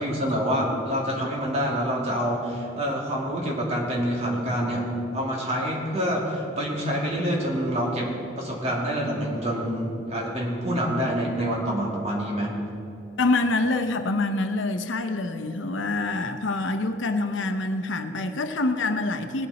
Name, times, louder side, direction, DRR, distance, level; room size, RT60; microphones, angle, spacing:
voice 1, 0.0-4.9 5.1-12.5, equal, 35° right, -3 dB, 2.5 m, -27 dB
voice 2, 13.2-19.5, left 2 dB, 85° left, 8 dB, 0.8 m, -26 dB
19.5 x 8.7 x 4.1 m, 2.7 s
head